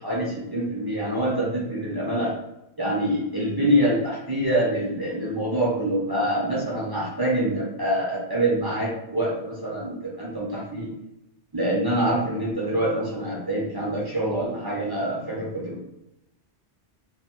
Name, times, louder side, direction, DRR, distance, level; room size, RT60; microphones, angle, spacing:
voice 1, 0.0-2.3 2.8-10.9 11.5-15.8, right 1 dB, 35° right, -6 dB, 0.4 m, -25 dB
2.6 x 2.2 x 2.8 m, 0.86 s
omnidirectional pair, 1.1 m